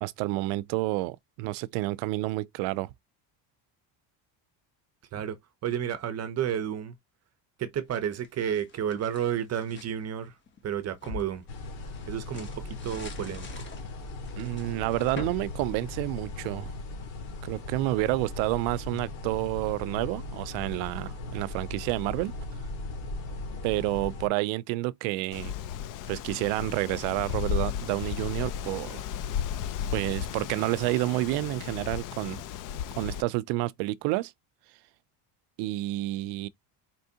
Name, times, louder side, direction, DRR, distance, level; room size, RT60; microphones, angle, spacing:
voice 1, 0.0-2.9 14.4-16.7 17.4-22.3 23.6-25.5 26.1-29.0 29.9-32.4 33.0-34.3 35.6-36.5, right 18 dB, 85° right, 0.5 m, -29 dB
voice 2, 5.1-6.9 7.6-10.4 10.6-11.4 12.1-13.7, right 9 dB, 35° right, 0.7 m, -31 dB
sound 1, 8.0-9.9 10.5-16.5, left 3 dB, 25° left, 1.1 m, -45 dB
sound 2, 11.5-24.3, left 2 dB, 80° left, 2.2 m, -38 dB
Wind, 25.3-33.2, left 8 dB, 45° left, 0.5 m, -34 dB
4.4 x 3.4 x 2.7 m
cardioid pair, 145°, 44 cm